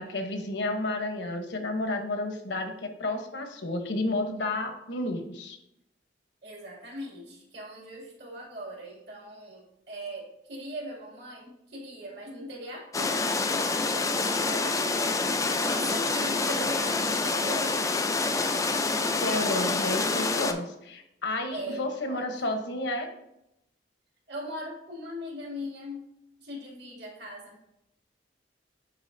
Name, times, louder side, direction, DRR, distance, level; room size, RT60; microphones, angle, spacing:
voice 1, 0.0-5.6 19.0-23.1, left 2 dB, 70° left, 6 dB, 0.9 m, -31 dB
voice 2, 6.4-13.4 13.9-17.8 21.5-22.4 24.3-26.1 26.4-27.6, equal, 65° right, -2 dB, 2.4 m, -40 dB
sound 1, 12.9-20.5, left 3 dB, 20° left, 0.4 m, -27 dB
9.5 x 4.0 x 2.6 m, 0.83 s
head